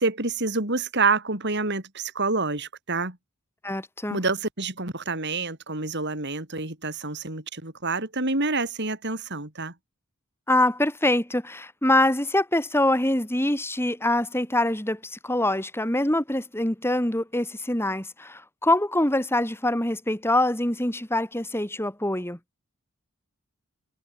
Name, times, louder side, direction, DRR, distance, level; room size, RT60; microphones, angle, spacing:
voice 1, 0.0-3.2 4.1-9.7, right 3 dB, 55° right, 5.6 m, -27 dB
voice 2, 3.6-4.2 10.5-22.4, left 1 dB, 10° left, 3.4 m, -24 dB
head